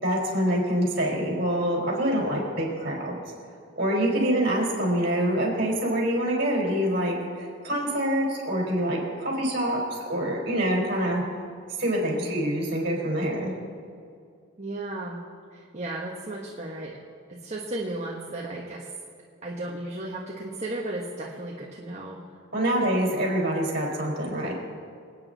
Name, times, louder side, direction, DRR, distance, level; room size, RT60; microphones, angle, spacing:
voice 1, 0.0-3.2 3.8-11.2 11.8-13.5 22.5-24.5, right 1 dB, 50° right, -3 dB, 4.5 m, -26 dB
voice 2, 12.0-12.3 14.6-15.2 15.5-17.0 17.3-18.9 19.4-22.2, right 2 dB, 35° right, -3 dB, 1.3 m, -35 dB
27.0 x 9.4 x 4.0 m, 2.2 s
head